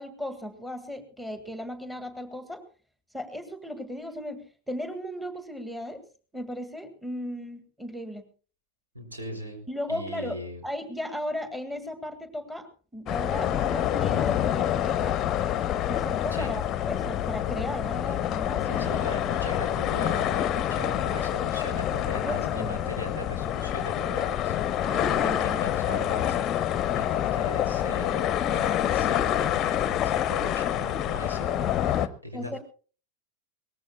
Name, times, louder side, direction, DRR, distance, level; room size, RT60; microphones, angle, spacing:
voice 1, 0.0-2.6 3.1-6.0 6.3-8.3 9.7-15.2 15.9-19.0 22.2-22.9 24.8-25.6 32.3-32.6, left 1 dB, 5° right, 9 dB, 1.8 m, -36 dB
voice 2, 8.9-9.6 9.9-10.6 16.3-16.5 18.6-24.6 24.9-32.6, left 1 dB, 80° right, 6 dB, 4.4 m, -39 dB
sound 1, 13.1-32.1, left 11 dB, 30° left, 0.8 m, -27 dB
22.5 x 19.0 x 2.3 m, 0.39 s
figure-of-eight pair, 90°, 0 cm